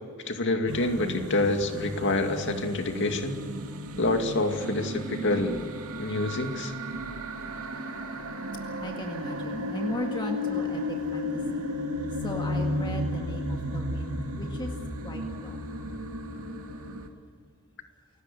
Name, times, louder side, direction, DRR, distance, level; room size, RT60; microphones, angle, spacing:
voice 1, 0.3-3.4 4.0-5.6 6.0-6.7, left 2 dB, 60° left, 5 dB, 2.3 m, -27 dB
sound 1, 0.7-17.1, left 1 dB, 85° right, 2.6 m, -34 dB
voice 2, 8.8-11.6 12.2-14.7 15.0-15.7, left 1 dB, 20° left, 2 dB, 1.9 m, -37 dB
29.5 x 17.5 x 7.0 m, 2.4 s
head